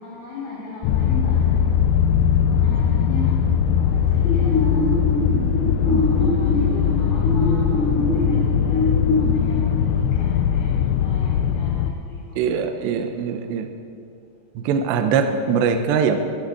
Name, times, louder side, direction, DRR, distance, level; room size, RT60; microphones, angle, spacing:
voice 1, 0.0-1.7 2.4-3.3 3.7-5.0 5.8-12.4 15.4-15.5, left 3 dB, 55° left, -6 dB, 4.9 m, -36 dB
sound 1, 0.8-11.9, left 8 dB, 85° left, 2.5 m, -20 dB
sound 2, 4.2-9.2, left 1 dB, 50° right, 6.8 m, -24 dB
voice 2, 5.8-6.2 12.4-13.7 14.6-16.2, right 6 dB, 75° right, 6 dB, 2.8 m, -22 dB
13.0 x 12.5 x 7.9 m, 2.4 s
omnidirectional pair, 5.8 m